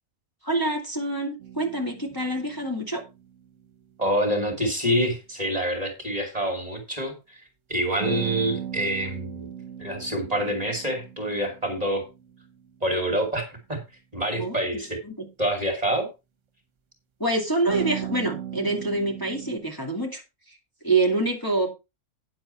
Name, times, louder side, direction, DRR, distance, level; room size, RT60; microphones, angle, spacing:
voice 1, 0.4-3.0 14.4-14.6 17.2-20.2 20.8-21.7, right 2 dB, 15° left, 0 dB, 2.5 m, -26 dB
sound 1, 1.4-3.7 8.0-12.8 17.7-19.6, right 10 dB, 55° right, 1.5 m, -37 dB
voice 2, 4.0-7.4 7.7-9.5 9.8-12.0 12.8-13.8 14.1-15.0 15.4-16.1, right 1 dB, 25° right, 3 dB, 2.8 m, -26 dB
9.7 x 7.7 x 4.4 m, 0.26 s
omnidirectional pair, 1.5 m